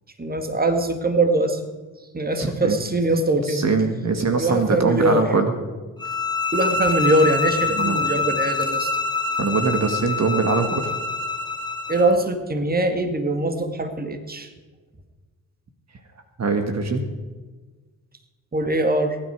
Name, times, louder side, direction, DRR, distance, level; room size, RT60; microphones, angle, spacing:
voice 1, 0.2-1.6 2.1-3.7 4.4-5.3 6.5-9.0 11.9-14.5 18.5-19.2, right 2 dB, 20° right, 7 dB, 2.1 m, -22 dB
voice 2, 2.4-2.8 3.4-5.5 7.7-8.0 9.4-10.9 16.4-17.1, right 4 dB, 40° right, 6 dB, 2.0 m, -22 dB
sound 1, 6.0-12.1, left 4 dB, 10° left, 2.2 m, -25 dB
22.5 x 9.9 x 4.8 m, 1.3 s
hypercardioid pair, 50°, 40 cm